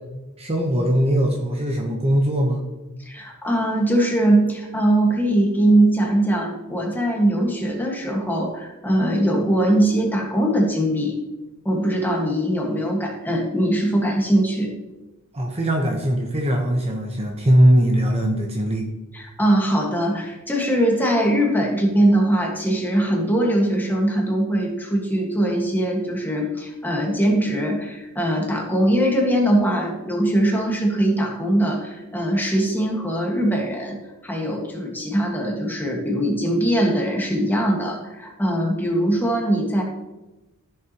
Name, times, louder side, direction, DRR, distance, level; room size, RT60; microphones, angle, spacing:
voice 1, 0.4-2.6 15.3-18.9, equal, 30° right, 1 dB, 1.1 m, -20 dB
voice 2, 3.0-11.2 11.6-14.7 19.1-34.0 34.2-39.8, right 1 dB, 10° left, -1 dB, 1.7 m, -21 dB
14.5 x 6.9 x 3.0 m, 1.1 s
head